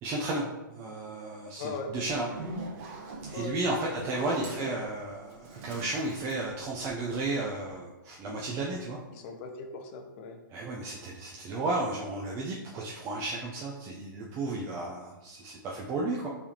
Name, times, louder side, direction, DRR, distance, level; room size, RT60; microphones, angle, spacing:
voice 1, 0.0-2.3 3.3-9.0 10.5-16.3, right 2 dB, 25° right, -3 dB, 0.5 m, -33 dB
voice 2, 1.6-1.9 3.3-3.9 4.2-4.8 9.1-10.4, left 3 dB, 35° left, 4 dB, 0.6 m, -39 dB
Zipper (clothing), 2.0-7.3, right 2 dB, 40° right, 1.0 m, -42 dB
4.6 x 3.4 x 2.9 m, 1.0 s
hypercardioid pair, 145°, 11 cm